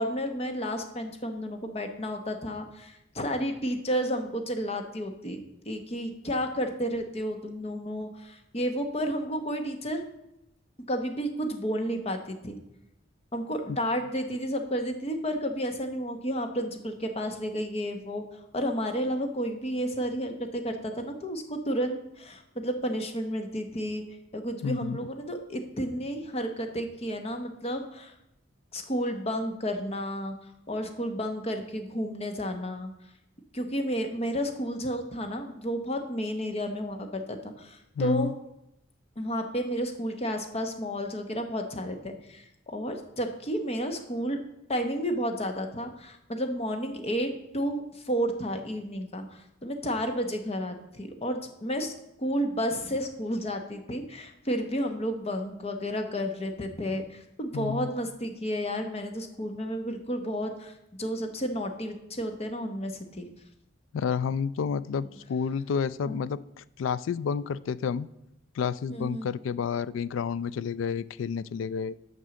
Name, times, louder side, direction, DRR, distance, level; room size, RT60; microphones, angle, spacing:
voice 1, 0.0-5.4 5.7-10.0 10.9-12.6 13.3-18.2 18.5-24.0 24.3-28.1 28.7-30.3 30.7-32.9 33.5-38.3 39.2-44.4 44.7-51.9 52.2-60.7 61.0-63.3 65.0-65.2 66.0-66.2 68.9-69.3, equal, 35° left, 6 dB, 1.0 m, -31 dB
voice 2, 24.6-25.0 38.0-38.3 57.5-57.9 63.9-68.1 68.5-71.9, left 6 dB, 90° left, 18 dB, 0.3 m, -30 dB
6.2 x 5.4 x 7.0 m, 0.85 s
head